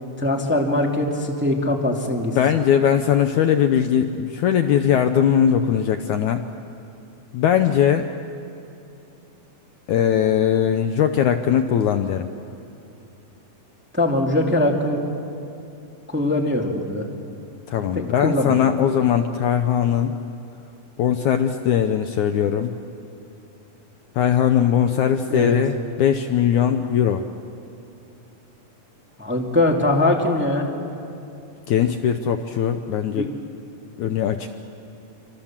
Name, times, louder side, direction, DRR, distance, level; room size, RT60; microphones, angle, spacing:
voice 1, 0.2-2.4 13.9-15.0 16.1-17.1 17.9-18.6 25.3-25.6 29.2-30.7 33.1-33.3, left 1 dB, 5° right, 1 dB, 1.5 m, -21 dB
voice 2, 2.4-6.5 7.3-8.1 9.9-12.3 17.7-20.2 21.0-22.8 24.2-27.3 31.7-33.3 34.0-34.5, left 9 dB, 70° left, 8 dB, 1.9 m, -20 dB
27.0 x 25.5 x 7.3 m, 2.7 s
omnidirectional pair, 4.1 m